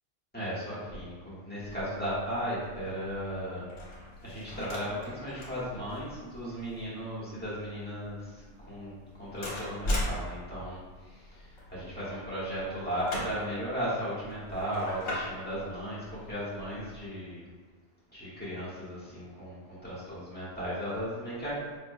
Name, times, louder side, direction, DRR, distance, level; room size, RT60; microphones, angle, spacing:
voice 1, 0.3-3.7 4.2-17.5 18.1-21.8, equal, 10° left, -11 dB, 1.2 m, -36 dB
sound 1, 1.6-17.1, left 1 dB, 70° left, 1.2 m, -41 dB
4.7 x 2.6 x 2.6 m, 1.4 s
omnidirectional pair, 1.2 m